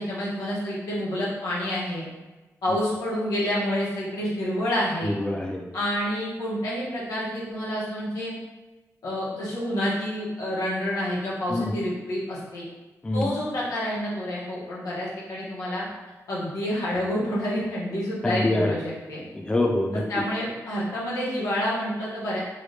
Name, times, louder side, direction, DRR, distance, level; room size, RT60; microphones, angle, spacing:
voice 1, 0.0-2.0 2.6-5.1 5.7-8.3 9.0-12.6 13.1-15.9 16.3-19.2 20.1-22.4, equal, 85° left, -6 dB, 1.1 m, -28 dB
voice 2, 5.0-5.7 11.5-11.7 13.0-13.3 18.2-18.7 19.3-20.0, left 1 dB, 15° left, 1 dB, 0.4 m, -25 dB
3.1 x 2.7 x 3.2 m, 1.2 s
cardioid pair, 90°, 6 cm